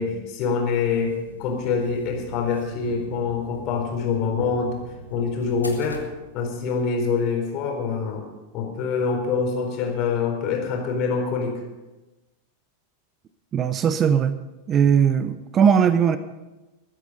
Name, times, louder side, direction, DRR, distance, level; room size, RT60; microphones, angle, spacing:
voice 1, 0.0-4.8 5.1-6.0 6.3-8.2 8.5-11.6, left 5 dB, 40° left, 2 dB, 4.1 m, -25 dB
sound 1, 0.7-6.8, right 1 dB, 85° left, 1.9 m, -41 dB
voice 2, 13.5-14.4 14.7-16.2, right 7 dB, 25° right, 13 dB, 0.7 m, -19 dB
21.0 x 9.7 x 5.3 m, 1.1 s
figure-of-eight pair, 90°, 0 cm